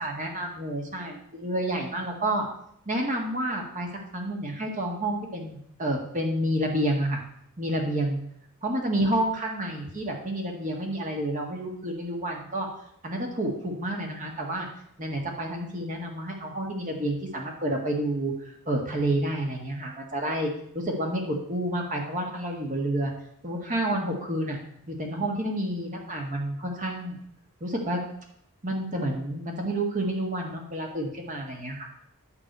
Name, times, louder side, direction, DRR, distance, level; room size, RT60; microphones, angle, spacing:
voice 1, 0.0-2.5 2.8-7.2 7.6-8.2 8.6-12.7 13.0-14.7 15.0-18.3 18.6-20.5 20.7-23.1 23.4-24.6 24.9-27.2 27.6-28.0 28.6-31.9, right 1 dB, 35° right, 1 dB, 1.8 m, -29 dB
9.7 x 4.7 x 7.9 m, 0.70 s
head